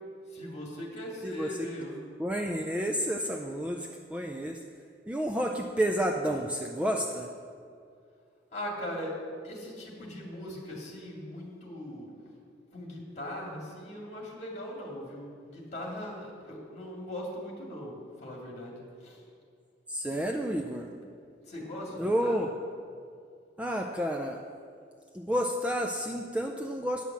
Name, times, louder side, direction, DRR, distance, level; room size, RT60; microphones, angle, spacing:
voice 1, 0.3-2.0 8.5-9.2 9.4-12.1 12.7-18.7 19.0-19.2 21.5-22.4, left 1 dB, 35° left, -2 dB, 2.2 m, -40 dB
voice 2, 1.2-1.7 2.2-4.6 5.1-7.3 19.9-20.9 21.9-22.5 23.6-24.4 25.1-27.0, equal, 5° right, 2 dB, 0.4 m, -30 dB
9.7 x 5.6 x 7.3 m, 2.3 s
head